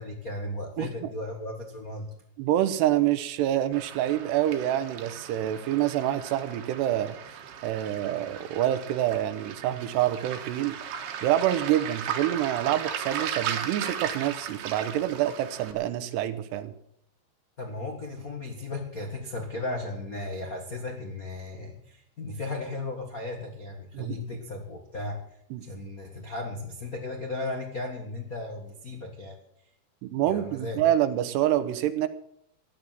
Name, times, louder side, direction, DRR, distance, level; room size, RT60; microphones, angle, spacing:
voice 1, 0.0-2.1 17.6-25.2 25.6-29.4 30.2-30.8, left 2 dB, 65° left, 2 dB, 0.8 m, -35 dB
voice 2, 0.8-1.1 2.4-7.2 7.6-10.8 11.2-16.7 23.9-24.2 25.5-25.6 30.0-32.1, right 12 dB, 90° right, 11 dB, 3.2 m, -27 dB
Waves surf, 3.7-15.7, right 8 dB, 75° right, 3.3 m, -37 dB
14.5 x 10.5 x 7.6 m, 0.71 s
omnidirectional pair, 4.7 m